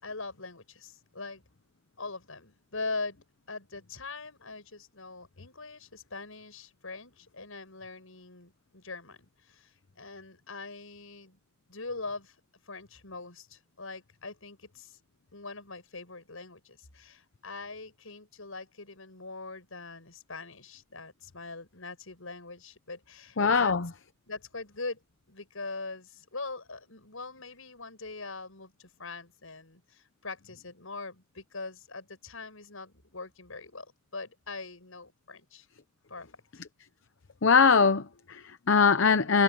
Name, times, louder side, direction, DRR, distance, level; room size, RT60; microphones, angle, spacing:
voice 1, 0.0-1.4 2.0-3.2 3.5-11.4 11.7-12.4 12.7-15.0 15.3-23.8 24.3-25.0 25.3-35.7 36.1-36.3 36.5-36.6, left 3 dB, 85° left, 6.4 m, -42 dB
voice 2, 23.4-23.9 37.4-39.4, left 5 dB, 65° left, 0.8 m, -22 dB
head